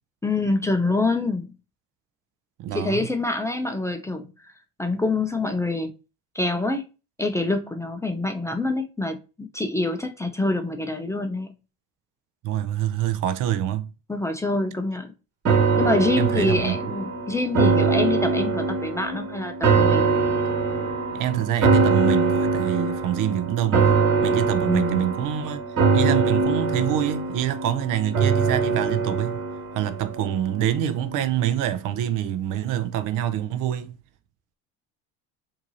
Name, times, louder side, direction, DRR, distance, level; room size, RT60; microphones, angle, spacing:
voice 1, 0.2-1.5 2.7-4.5 4.8-5.9 6.3-6.8 7.2-11.5 14.1-15.1 15.8-20.1 24.7-25.1, left 2 dB, 10° left, 0.6 m, -26 dB
voice 2, 2.6-3.1 12.4-13.9 15.5-15.7 16.2-16.8 21.1-25.6 25.9-29.4 29.7-34.0, right 11 dB, 55° right, 0.6 m, -26 dB
sound 1, 15.4-30.7 31.1-31.2, right 4 dB, 40° right, 1.9 m, -23 dB
4.5 x 2.8 x 2.7 m
supercardioid pair, 90°, 38 cm